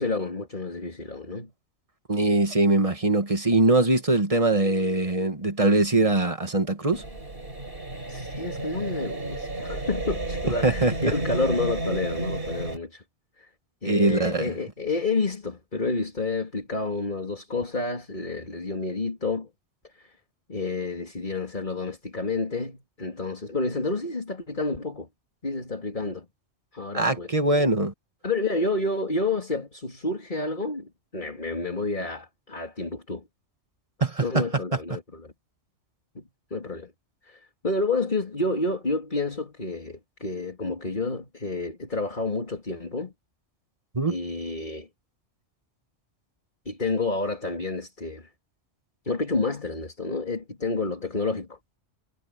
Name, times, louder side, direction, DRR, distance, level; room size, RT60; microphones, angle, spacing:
voice 1, 0.0-1.5 8.1-13.0 13.4-13.5 13.8-19.5 20.0-20.1 20.5-25.1 25.4-26.3 26.7-27.3 28.2-33.2 34.2-35.3 36.2-36.3 36.5-36.9 37.2-43.1 44.1-44.9 46.7-48.3 49.0-51.6, left 3 dB, 40° left, 3.4 m, -29 dB
voice 2, 2.1-7.0 10.6-11.1 13.9-14.5 26.9-27.9 34.0-34.4 43.9-44.2, right 2 dB, 30° right, 2.1 m, -22 dB
sound 1, 6.9-12.8, right 2 dB, 50° right, 4.9 m, -32 dB
omnidirectional pair, 1.2 m